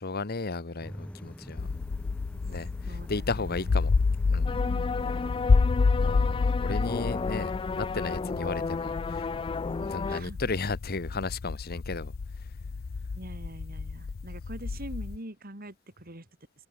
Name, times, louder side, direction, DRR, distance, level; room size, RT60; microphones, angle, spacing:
voice 1, 0.0-1.7 2.5-3.9 4.3-4.6 6.0-9.3 9.8-12.1, left 3 dB, 50° left, 1.2 m, -34 dB
sound 1, 0.8-9.8, equal, 5° left, 0.9 m, -47 dB
sound 2, 1.6-15.2, left 4 dB, 80° left, 0.6 m, -29 dB
voice 2, 2.9-3.8 4.7-5.7 10.0-10.4 13.1-16.3, right 1 dB, 50° right, 4.6 m, -44 dB
sound 3, 4.5-10.2, left 4 dB, 25° left, 0.3 m, -33 dB
head